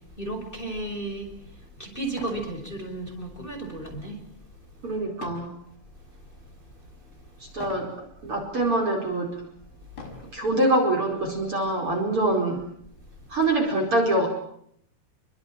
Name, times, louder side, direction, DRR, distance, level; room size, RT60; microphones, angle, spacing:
voice 1, 0.2-1.3 1.8-4.2, right 2 dB, 10° left, 4 dB, 5.4 m, -33 dB
sound 1, 1.2-1.3 2.1-2.5 3.0-3.3 5.2-5.6 6.2-6.6 7.6-8.0 8.7-8.8 9.9-10.4 11.4-11.5 11.9-12.0 12.4-13.5, left 3 dB, 70° left, 7.6 m, -42 dB
voice 2, 4.8-5.5 7.5-7.9 8.2-9.4 10.3-12.6 13.3-14.3, right 2 dB, 35° right, 2 dB, 5.3 m, -24 dB
28.5 x 23.5 x 7.5 m, 0.71 s
omnidirectional pair, 4.6 m